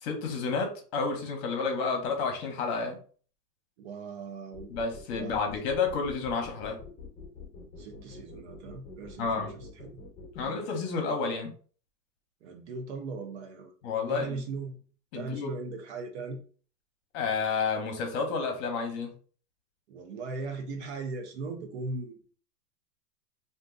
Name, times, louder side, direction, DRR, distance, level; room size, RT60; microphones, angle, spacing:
voice 1, 0.0-3.0 4.7-6.8 9.2-9.5 10.3-11.5 13.8-14.4 15.1-15.5 17.1-19.1, left 4 dB, 40° left, 3 dB, 1.0 m, -30 dB
voice 2, 3.8-4.7 5.1-5.4 7.8-10.0 10.4-10.7 12.4-13.7 14.1-14.8 15.1-16.4 19.9-22.2, right 3 dB, 45° right, 5 dB, 0.5 m, -38 dB
sound 1, 4.5-10.5, left 4 dB, 15° left, 1.0 m, -46 dB
2.6 x 2.2 x 3.7 m, 0.41 s
hypercardioid pair, 140°, 49 cm